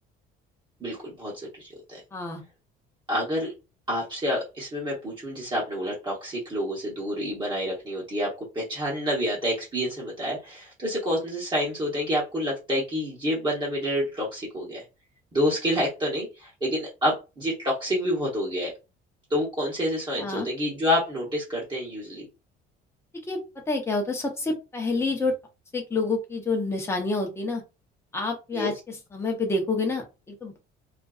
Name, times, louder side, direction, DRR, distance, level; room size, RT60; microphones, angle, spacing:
voice 1, 0.8-2.0 3.1-3.5 3.9-14.8 15.3-18.7 19.3-22.3 28.5-28.7, equal, 20° right, -5 dB, 0.9 m, -28 dB
voice 2, 2.1-2.4 20.2-20.5 23.3-23.4 23.7-25.3 25.7-27.6 28.1-30.6, left 3 dB, 15° left, 1 dB, 0.7 m, -28 dB
2.5 x 2.4 x 2.3 m, 0.27 s
cardioid pair, 150°, 20 cm